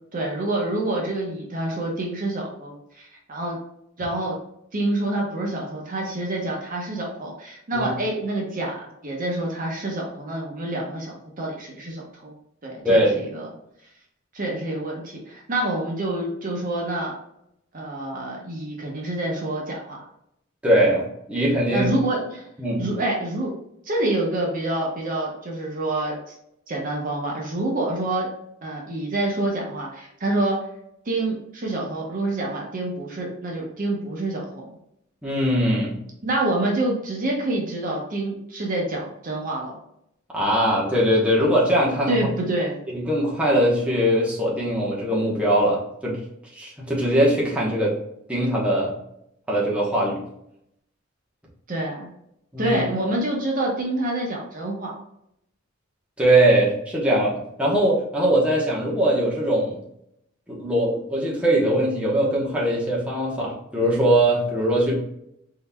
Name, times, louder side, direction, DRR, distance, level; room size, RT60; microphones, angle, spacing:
voice 1, 0.1-3.6 4.0-4.4 4.7-12.4 12.6-13.5 14.3-17.2 17.7-20.0 21.7-22.5 22.8-23.5 23.8-26.4 26.7-28.3 28.6-30.6 31.0-34.7 36.2-39.7 42.1-42.8 51.7-52.1 52.6-54.9, right 2 dB, 45° right, -1 dB, 0.8 m, -27 dB
voice 2, 20.6-21.9 22.6-22.8 35.2-36.0 40.3-42.2 42.9-46.2 46.5-47.9 48.3-48.9 49.5-50.2 52.5-52.8 56.2-59.8 60.5-65.0, right 1 dB, 5° right, -5 dB, 1.0 m, -21 dB
4.1 x 3.8 x 2.2 m, 0.77 s
head